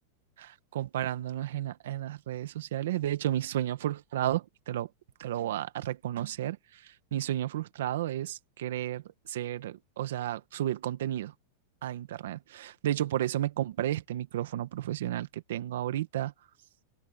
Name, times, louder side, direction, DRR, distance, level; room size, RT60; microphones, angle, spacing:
voice 1, 0.7-4.9 5.2-6.8 7.1-9.0 9.3-11.3 11.8-16.3, right 12 dB, 70° right, 1.5 m, -32 dB
open air
supercardioid pair, 180°, 0 cm